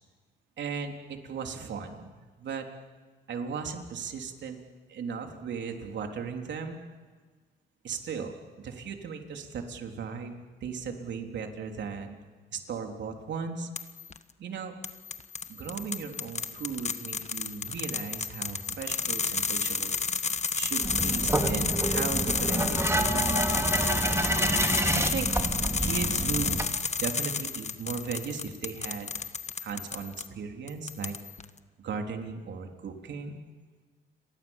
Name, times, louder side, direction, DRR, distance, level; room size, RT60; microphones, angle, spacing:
voice 1, 0.6-2.7 3.3-4.6 4.9-6.9 7.8-12.2 12.5-13.7 14.4-14.7 15.5-19.9 20.5-23.4 24.9-25.3 25.8-26.6 27.0-29.1 29.6-31.2 31.8-33.4, right 5 dB, 65° right, 3 dB, 3.6 m, -36 dB
sound 1, 13.8-14.2 14.8-30.3 30.7-31.4, left 5 dB, 35° left, 1.4 m, -31 dB
sound 2, 20.8-26.7, right 1 dB, 15° right, 2.6 m, -28 dB
30.0 x 22.5 x 7.3 m, 1.4 s
cardioid pair, 90°, 20 cm